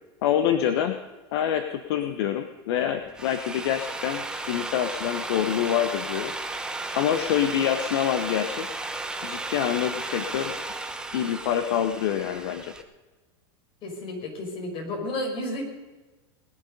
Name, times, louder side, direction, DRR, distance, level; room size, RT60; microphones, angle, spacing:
voice 1, 0.2-1.0 1.3-6.3 6.9-8.7 9.2-10.6 11.1-12.7, left 10 dB, 65° left, 8 dB, 1.1 m, -26 dB
Drill, 3.0-12.8, right 2 dB, 5° right, 1.0 m, -34 dB
voice 2, 13.8-15.6, left 1 dB, 40° left, 2 dB, 5.4 m, -32 dB
20.0 x 11.0 x 5.4 m, 1.2 s
supercardioid pair, 125°, 14 cm